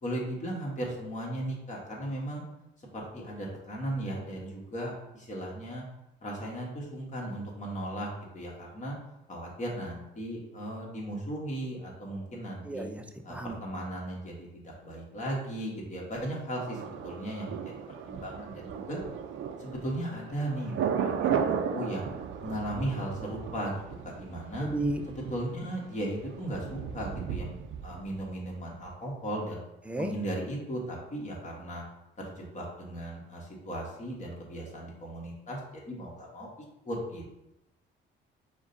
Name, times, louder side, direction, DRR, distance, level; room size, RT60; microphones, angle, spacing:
voice 1, 0.0-2.4 2.9-5.8 6.2-8.1 8.3-9.0 9.3-12.9 13.2-17.7 18.0-19.0 19.6-22.0 22.4-23.8 24.0-24.7 25.1-27.6 27.8-29.6 30.0-31.8 32.2-36.5 36.8-37.3, right 1 dB, 40° left, -3 dB, 1.4 m, -36 dB
voice 2, 12.6-13.0 13.3-13.6 24.6-25.0 29.9-30.1, right 1 dB, 5° right, 5 dB, 0.5 m, -32 dB
Thunder, 16.7-28.5 28.8-28.9, right 7 dB, 80° right, 0.4 m, -35 dB
4.8 x 2.3 x 4.0 m, 0.90 s
cardioid pair, 90°, 20 cm